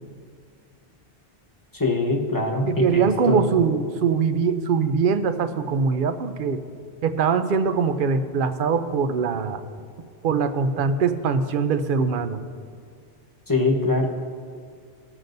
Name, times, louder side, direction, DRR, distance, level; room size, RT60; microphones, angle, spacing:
voice 1, 1.7-3.5 13.5-14.1, left 2 dB, 20° left, 0 dB, 1.0 m, -23 dB
voice 2, 2.7-6.6 7.0-9.6 10.2-12.4, right 5 dB, 60° right, 10 dB, 0.6 m, -22 dB
17.0 x 7.3 x 2.6 m, 2.2 s
omnidirectional pair, 1.1 m